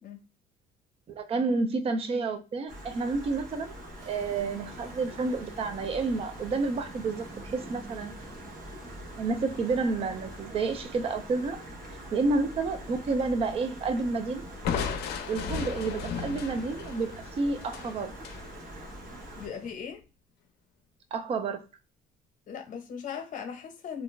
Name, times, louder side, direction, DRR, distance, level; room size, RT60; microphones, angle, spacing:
voice 1, 1.1-3.7 4.1-7.3 7.5-8.1 9.2-11.6 12.1-14.4 15.3-18.1 21.1-21.6, right 3 dB, 35° right, 0.4 m, -30 dB
Stream, 2.7-19.5, right 1 dB, 50° right, 0.9 m, -45 dB
sound 1, 4.0-19.7, right 1 dB, 75° right, 1.1 m, -50 dB
Crushing, 14.6-18.4, left 6 dB, 75° left, 0.5 m, -34 dB
voice 2, 19.4-20.0 22.5-24.0, left 7 dB, 50° left, 0.8 m, -38 dB
2.4 x 2.1 x 3.1 m
cardioid pair, 110°, 17 cm